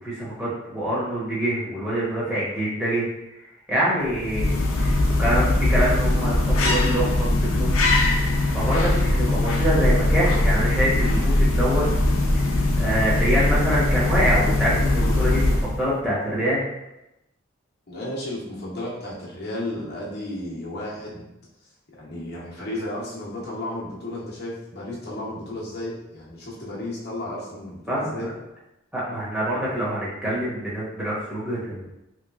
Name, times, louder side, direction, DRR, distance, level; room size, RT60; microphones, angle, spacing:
voice 1, 0.0-3.1 3.7-7.7 8.5-11.8 12.3-16.6 27.9-28.3 28.9-31.9, equal, 5° right, -8 dB, 0.9 m, -25 dB
sound 1, 4.1-15.9, left 1 dB, 80° left, 0.6 m, -21 dB
voice 2, 17.9-21.2 22.0-28.3, left 1 dB, 50° left, -6 dB, 0.8 m, -33 dB
3.4 x 3.0 x 2.4 m, 0.90 s
head